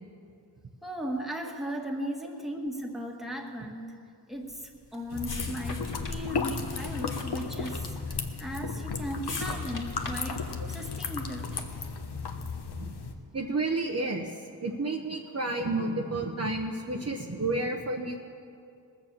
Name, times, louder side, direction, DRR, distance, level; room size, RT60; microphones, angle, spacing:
voice 1, 0.8-4.0 4.3-4.6 4.9-7.9 8.4-10.4 10.7-11.5, equal, ahead, 1 dB, 1.8 m, -36 dB
sound 1, 4.5-12.0, left 2 dB, 45° left, 2.2 m, -43 dB
sound 2, 5.1-13.1, left 4 dB, 60° left, 1.2 m, -34 dB
voice 2, 13.3-14.3 14.6-18.2, right 2 dB, 35° right, 1 dB, 1.1 m, -31 dB
20.0 x 6.8 x 7.4 m, 2.4 s
cardioid pair, 75°, 44 cm